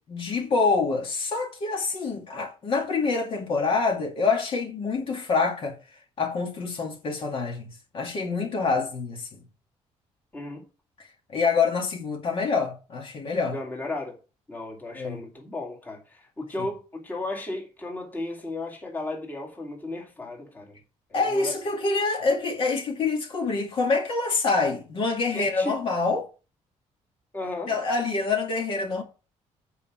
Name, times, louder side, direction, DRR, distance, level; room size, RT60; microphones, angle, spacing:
voice 1, 0.0-5.8 6.2-9.4 11.3-13.6 15.0-15.2 21.1-26.3 27.7-29.0, left 4 dB, 45° left, 2.2 m, -26 dB
voice 2, 10.3-10.7 13.5-14.2 14.5-20.8 21.1-21.6 25.3-25.8 27.3-27.8, left 2 dB, 15° left, 2.2 m, -35 dB
8.3 x 4.8 x 7.4 m
cardioid pair, 165°, 12 cm